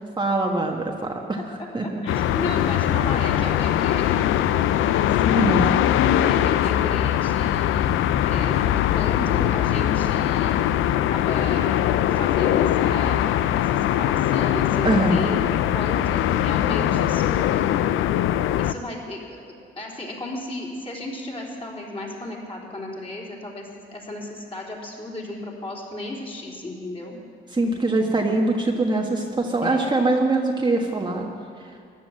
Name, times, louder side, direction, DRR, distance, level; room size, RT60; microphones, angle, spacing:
voice 1, 0.2-1.4 1.7-2.0 5.3-5.7 14.8-15.2 27.5-31.3 31.6-31.7, right 2 dB, 20° right, 0 dB, 1.4 m, -23 dB
voice 2, 1.8-5.7 6.1-8.0 8.2-10.6 11.1-11.8 12.1-13.3 13.6-17.8 18.6-27.2 29.6-30.2, left 1 dB, 30° left, -2 dB, 3.8 m, -35 dB
sound 1, 2.1-18.7, left 11 dB, 85° left, 0.5 m, -21 dB
15.0 x 10.5 x 7.7 m, 2.4 s
cardioid pair, 90°, 20 cm